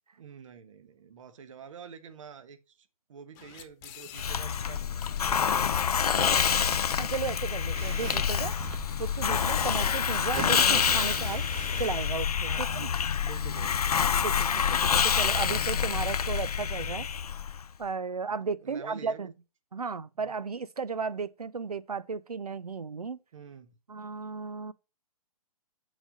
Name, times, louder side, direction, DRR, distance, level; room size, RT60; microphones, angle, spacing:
voice 1, 0.2-6.6 12.4-12.9 13.2-14.2 18.3-19.3 20.2-20.3 23.3-23.8, right 6 dB, 55° right, 1.3 m, -48 dB
sound 1, 3.3-4.8 5.0-7.0 7.5-7.7 8.2-9.1 9.4-9.6, left 11 dB, 30° left, 1.1 m, -46 dB
Hiss, 4.1-17.6, left 7 dB, 80° left, 0.4 m, -27 dB
voice 2, 7.0-8.5 9.0-11.4 11.8-12.9 14.2-17.1 17.8-19.3 19.7-23.2 23.9-24.7, right 5 dB, 80° right, 0.7 m, -34 dB
sound 2, 7.7-12.7, right 14 dB, 20° right, 0.3 m, -42 dB
7.8 x 4.2 x 6.4 m
figure-of-eight pair, 125°, 19 cm